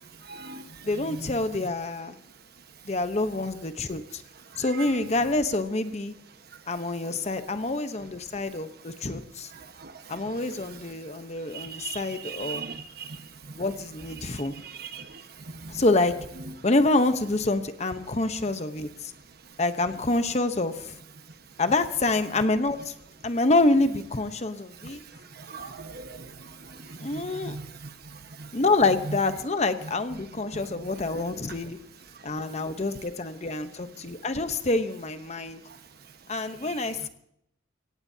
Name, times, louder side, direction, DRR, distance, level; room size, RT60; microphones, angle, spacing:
voice 1, 0.2-1.4 4.8-4.9 9.5-10.5 11.5-13.6 14.2-15.8 24.8-24.9 25.3-28.5 31.1-31.2, right 4 dB, 55° right, 1.3 m, -41 dB
voice 2, 0.8-2.2 2.9-4.2 4.6-6.1 6.7-9.5 10.1-12.6 13.6-14.5 15.7-16.1 16.6-19.1 19.6-20.9 21.6-22.9 23.2-25.0 27.0-27.6 28.5-31.8 32.2-35.6 36.3-37.1, left 2 dB, 35° left, 0.9 m, -27 dB
23.5 x 17.5 x 2.8 m
head